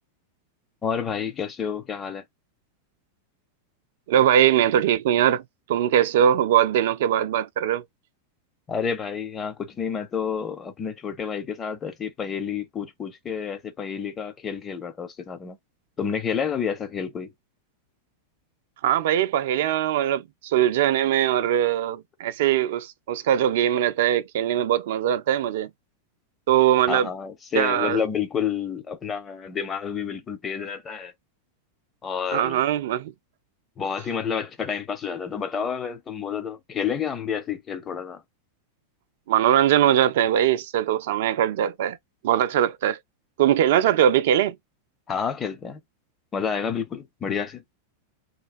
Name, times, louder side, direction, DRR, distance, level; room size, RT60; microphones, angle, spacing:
voice 1, 0.8-2.2 8.7-15.6 16.0-17.3 26.9-31.1 32.0-32.6 33.8-38.2 45.1-45.8 46.3-47.6, left 7 dB, 20° left, 0.7 m, -29 dB
voice 2, 4.1-5.4 5.7-7.8 18.8-25.7 26.5-27.1 27.5-28.0 32.3-33.1 39.3-42.0 42.2-43.0 43.4-44.6, right 10 dB, 55° right, 0.3 m, -21 dB
3.1 x 2.2 x 2.5 m
figure-of-eight pair, 90°, 0 cm